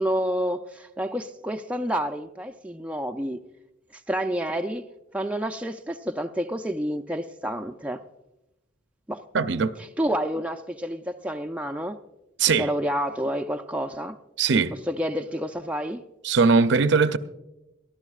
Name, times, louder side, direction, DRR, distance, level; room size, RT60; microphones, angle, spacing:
voice 1, 0.0-3.4 3.9-4.8 5.1-8.0 9.1-9.2 10.0-12.0 12.6-14.2 14.9-16.0, equal, 5° right, 0.4 m, -29 dB
voice 2, 9.3-9.7 12.4-12.7 14.4-14.7 16.2-17.2, right 4 dB, 60° right, 0.6 m, -20 dB
23.0 x 14.0 x 2.4 m
head